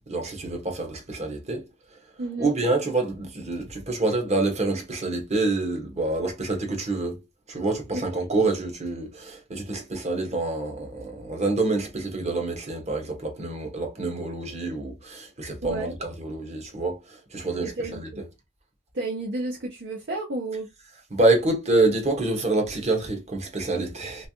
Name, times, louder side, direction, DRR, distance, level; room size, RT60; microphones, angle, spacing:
voice 1, 0.1-1.6 2.4-7.2 7.5-17.0 17.3-18.1 21.1-24.3, right 2 dB, 35° right, 1.1 m, -27 dB
voice 2, 2.2-2.6 7.9-8.0 15.6-15.9 17.6-18.2 18.9-20.7, right 2 dB, 55° right, 0.8 m, -31 dB
3.3 x 3.2 x 2.7 m
head